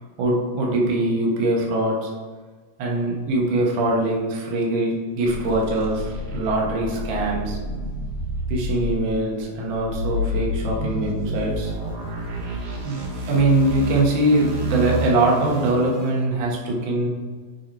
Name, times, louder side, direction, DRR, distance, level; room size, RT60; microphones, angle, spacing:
voice 1, 0.2-2.1 2.8-7.6 8.5-11.7 12.8-13.0 13.3-17.1, right 2 dB, 55° right, -2 dB, 1.5 m, -22 dB
sound 1, 5.3-16.1, equal, 85° right, 3.1 m, -29 dB
6.6 x 4.8 x 4.6 m, 1.5 s
omnidirectional pair, 3.9 m